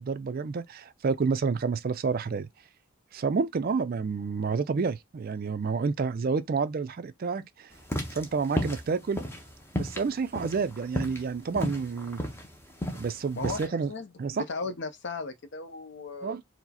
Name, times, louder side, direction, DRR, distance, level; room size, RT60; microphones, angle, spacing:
voice 1, 0.0-2.5 3.1-7.7 8.1-9.2 9.7-12.2 12.9-13.9 14.2-14.4 16.2-16.4, right 5 dB, 45° right, 0.3 m, -29 dB
sound 1, 7.8-13.7, equal, 10° left, 0.6 m, -33 dB
voice 2, 13.4-16.4, left 3 dB, 55° left, 0.6 m, -36 dB
4.6 x 2.1 x 4.1 m
head